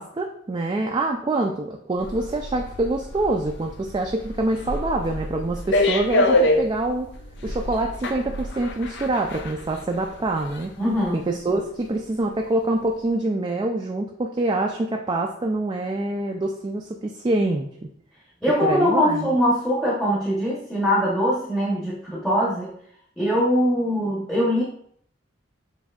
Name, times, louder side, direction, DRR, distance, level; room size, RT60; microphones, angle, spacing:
voice 1, 0.0-7.1 7.4-10.7 11.1-17.7 18.6-19.4, right 2 dB, 25° right, 2 dB, 0.3 m, -25 dB
sound 1, 2.0-11.0 11.4-11.6, left 1 dB, 65° left, 0.5 m, -27 dB
voice 2, 10.8-11.3 18.4-22.7 23.2-24.6, equal, ahead, -6 dB, 0.8 m, -22 dB
7.0 x 2.6 x 2.3 m, 0.64 s
head